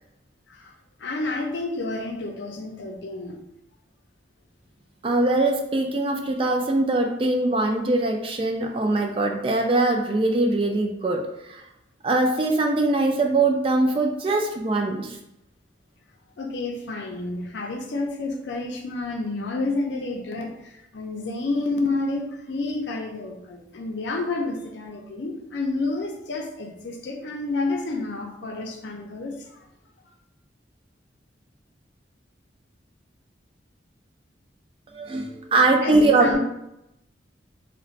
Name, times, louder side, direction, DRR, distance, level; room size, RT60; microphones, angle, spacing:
voice 1, 1.0-3.4 16.4-29.6 35.8-36.4, left 2 dB, 75° left, 2 dB, 0.5 m, -30 dB
voice 2, 5.0-11.6 12.0-15.2 34.9-36.4, right 2 dB, 30° right, 2 dB, 0.3 m, -22 dB
2.4 x 2.1 x 3.8 m, 0.85 s
head